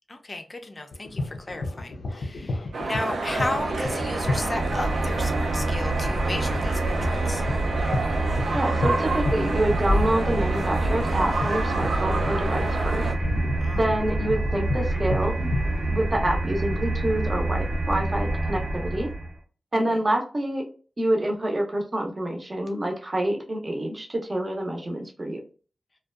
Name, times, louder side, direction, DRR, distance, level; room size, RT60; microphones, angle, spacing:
voice 1, 0.1-7.4 13.6-13.9 19.7-20.0, left 2 dB, 30° left, 0.4 m, -34 dB
sound 1, 0.9-15.9, left 2 dB, 90° left, 0.4 m, -32 dB
sound 2, 2.7-13.1, right 3 dB, 85° right, 0.4 m, -29 dB
sound 3, 3.2-19.4, right 2 dB, 70° right, 0.8 m, -27 dB
voice 2, 8.5-13.1 13.8-15.3 15.9-19.1 19.7-20.7 21.0-25.4, right 1 dB, 30° right, 0.5 m, -27 dB
2.5 x 2.2 x 2.3 m
wide cardioid pair, 115°, 0 cm